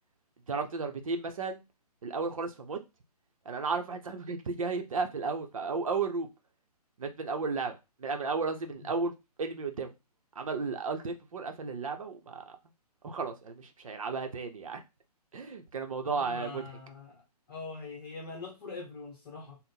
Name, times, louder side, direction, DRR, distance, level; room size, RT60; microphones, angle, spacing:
voice 1, 0.5-1.6 2.0-2.8 3.4-6.3 7.0-9.1 9.4-9.9 10.4-12.6 13.0-14.8 15.3-16.6, right 4 dB, 55° right, 0.7 m, -34 dB
voice 2, 16.0-17.2 17.5-19.6, left 3 dB, 35° left, 0.8 m, -43 dB
3.6 x 2.1 x 4.1 m
figure-of-eight pair, 130°, 20 cm